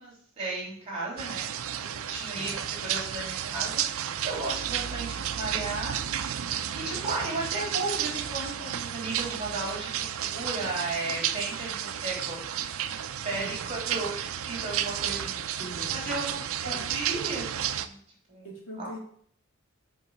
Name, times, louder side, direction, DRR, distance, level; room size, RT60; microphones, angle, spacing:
voice 1, 0.0-1.5 1.8-6.0 6.7-12.7 13.2-15.6 15.9-18.0 18.3-18.5 18.8-18.9, right 2 dB, 30° right, -3 dB, 3.2 m, -35 dB
sound 1, 1.2-17.9, right 10 dB, 70° right, 0.5 m, -32 dB
voice 2, 13.3-13.7 15.6-16.2 16.6-16.9 18.4-19.0, equal, 65° left, -3 dB, 2.8 m, -41 dB
6.5 x 4.7 x 5.8 m, 0.62 s
head